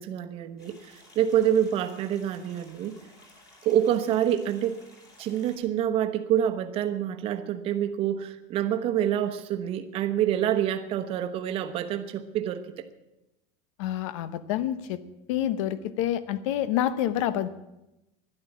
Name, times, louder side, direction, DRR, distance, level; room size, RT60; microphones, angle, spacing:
voice 1, 0.0-3.0 3.6-4.8 5.2-12.9, right 10 dB, 35° right, 8 dB, 1.0 m, -27 dB
sound 1, 0.6-5.6, left 2 dB, 20° left, 3.3 m, -55 dB
voice 2, 13.8-15.0 15.3-17.5, left 11 dB, 70° left, 15 dB, 1.0 m, -28 dB
12.5 x 11.0 x 8.4 m, 0.93 s
cardioid pair, 175°, 17 cm